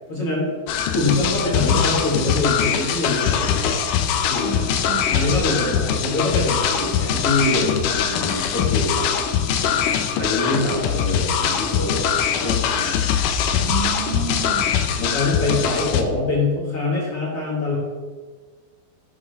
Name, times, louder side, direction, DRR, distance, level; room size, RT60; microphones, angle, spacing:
voice 1, 0.1-0.5 0.9-3.8 4.2-4.7 5.1-9.1 10.2-12.0 12.3-13.1 15.0-17.8, left 2 dB, 45° left, -4 dB, 2.3 m, -24 dB
sound 1, 0.7-16.0, left 8 dB, 90° left, 1.8 m, -22 dB
voice 2, 1.1-1.8 4.4-5.8 13.6-14.7, right 7 dB, 70° right, -2 dB, 1.8 m, -32 dB
11.5 x 7.7 x 3.5 m, 1.4 s
omnidirectional pair, 4.7 m